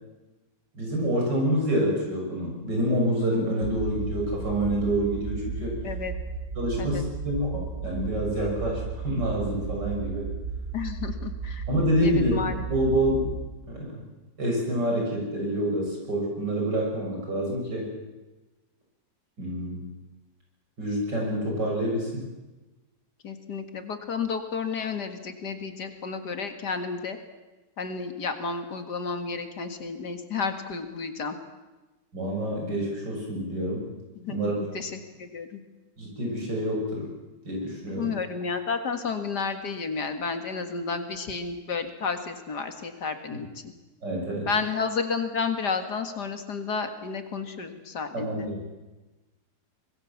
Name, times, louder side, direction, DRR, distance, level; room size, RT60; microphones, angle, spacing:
voice 1, 0.7-5.8 6.6-10.3 11.7-13.3 13.7-14.0 14.4-17.9 19.4-19.8 20.8-22.2 32.1-33.8 34.3-34.5 36.0-37.1 37.5-38.1 44.0-44.5 48.1-48.8, equal, 70° right, -1 dB, 7.3 m, -27 dB
sound 1, 3.6-13.5, right 5 dB, 40° right, 1.6 m, -34 dB
voice 2, 5.8-6.1 6.8-7.0 10.7-11.6 12.0-12.6 23.2-27.2 27.8-31.3 34.2-35.6 37.9-43.5 44.5-48.5, left 5 dB, 65° left, 7 dB, 2.4 m, -31 dB
25.0 x 21.5 x 7.2 m, 1.1 s
omnidirectional pair, 2.0 m